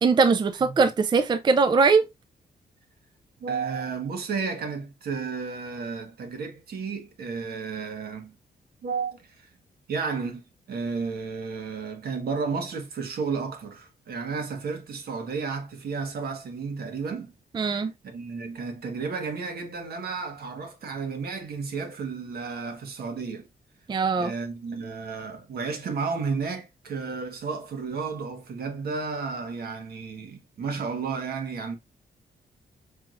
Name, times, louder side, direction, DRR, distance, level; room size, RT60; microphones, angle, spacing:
voice 1, 0.0-2.0 17.5-17.9 23.9-24.3, right 4 dB, 30° right, 0.4 m, -21 dB
voice 2, 3.4-8.3 8.8-9.5 9.9-10.4 10.7-17.3 18.1-23.5 24.1-31.8, right 5 dB, 75° right, 1.3 m, -32 dB
4.6 x 3.6 x 2.4 m
wide cardioid pair, 125°, 16 cm